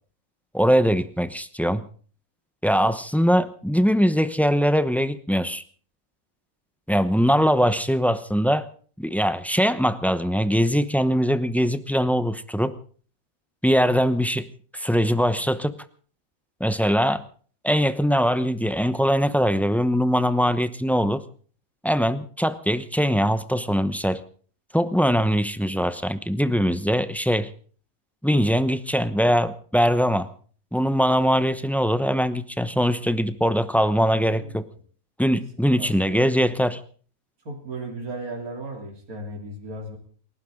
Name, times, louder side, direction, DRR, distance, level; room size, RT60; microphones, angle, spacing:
voice 1, 0.5-1.8 2.6-5.6 6.9-8.7 9.0-12.7 13.6-14.5 14.7-15.8 16.6-17.2 17.6-21.2 21.8-24.2 24.7-27.5 28.2-30.3 30.7-34.7 35.2-36.8, equal, ahead, 12 dB, 0.6 m, -22 dB
voice 2, 35.8-36.4 37.5-40.0, right 2 dB, 80° right, 1 dB, 3.5 m, -35 dB
29.0 x 12.0 x 3.8 m, 0.43 s
omnidirectional pair, 1.5 m